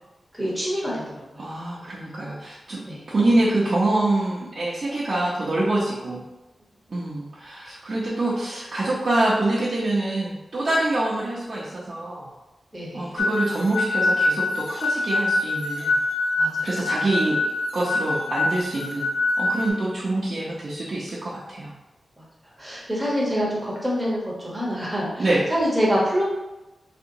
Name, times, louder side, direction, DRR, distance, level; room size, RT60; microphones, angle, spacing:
voice 1, 0.3-1.0 2.9-3.0 12.7-13.1 16.4-16.7 22.6-25.2 25.5-26.2, equal, 10° right, -5 dB, 0.9 m, -25 dB
voice 2, 1.4-6.2 6.9-12.3 12.9-16.0 16.6-17.4 17.7-21.7 25.2-25.4, right 2 dB, 45° right, -8 dB, 0.6 m, -25 dB
sound 1, 13.2-19.7, left 2 dB, 75° left, 0.4 m, -24 dB
3.3 x 2.9 x 2.6 m, 1.0 s
wide cardioid pair, 135°, 0 cm